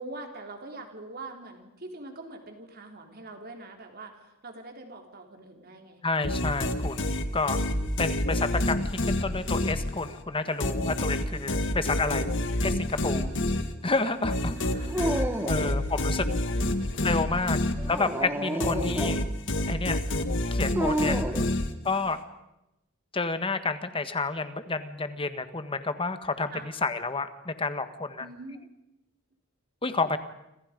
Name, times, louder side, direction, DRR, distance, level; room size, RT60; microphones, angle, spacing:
voice 1, 0.0-6.0 13.1-13.5 14.3-15.6 16.1-17.8 21.3-21.5 26.5-26.7 28.2-28.6, right 2 dB, 45° right, 4 dB, 3.9 m, -44 dB
voice 2, 6.0-7.6 8.0-12.3 12.6-13.3 13.8-14.9 15.4-16.2 17.0-17.6 17.9-19.2 19.7-20.0 20.5-21.2 21.8-22.2 23.1-26.5 26.8-28.3 29.8-30.2, left 3 dB, 25° left, 10 dB, 1.5 m, -30 dB
sound 1, 6.2-10.2 10.6-18.2 18.6-22.1, left 1 dB, 60° left, 2.0 m, -28 dB
Dog, 14.9-15.9 17.8-19.3 20.7-21.5, right 1 dB, 10° right, 1.7 m, -30 dB
28.0 x 26.5 x 5.3 m, 0.89 s
head